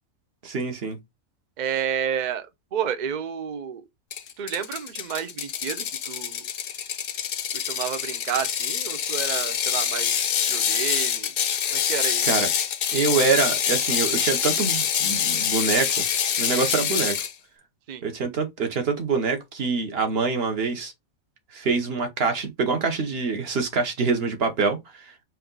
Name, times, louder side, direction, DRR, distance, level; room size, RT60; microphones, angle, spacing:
voice 1, 0.4-1.0 12.2-12.5 12.9-15.9 16.4-17.2 18.0-20.9 21.5-24.8 25.0-25.1, right 4 dB, 50° right, 1.1 m, -25 dB
voice 2, 1.6-2.5 2.7-3.8 4.4-6.5 7.5-10.1 10.5-11.3 11.7-12.3 17.9-18.0, right 8 dB, 90° right, 0.4 m, -30 dB
Ratchet pawl, 4.1-17.3, left 8 dB, 60° left, 0.6 m, -26 dB
4.6 x 2.6 x 3.8 m
omnidirectional pair, 1.5 m